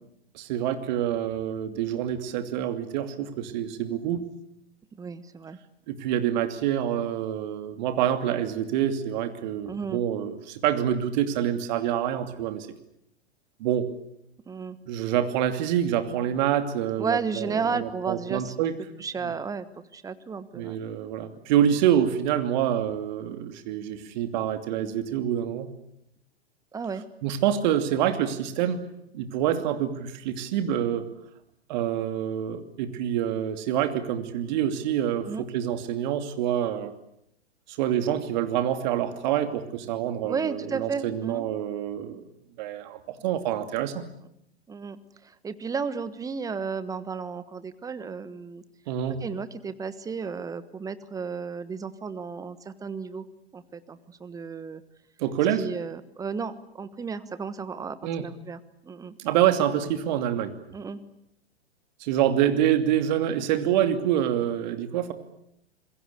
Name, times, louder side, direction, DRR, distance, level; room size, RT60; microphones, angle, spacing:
voice 1, 0.3-4.3 5.9-12.7 13.6-13.9 14.9-18.7 19.2-19.3 20.5-25.7 27.2-28.8 29.1-31.1 31.7-36.9 37.8-42.3 42.6-44.0 48.9-49.2 55.2-55.7 58.0-58.3 59.2-60.5 62.0-65.1, right 10 dB, 45° right, 8 dB, 2.7 m, -26 dB
voice 2, 5.0-5.6 9.7-10.0 14.5-14.8 17.0-18.5 19.0-19.7 19.9-20.8 26.7-27.0 35.2-35.5 40.2-41.5 44.7-48.6 49.2-53.3 53.5-54.8 55.5-59.1 60.7-61.0, right 5 dB, 10° right, 14 dB, 1.3 m, -33 dB
27.0 x 22.0 x 8.3 m, 0.76 s
figure-of-eight pair, 105°, 32 cm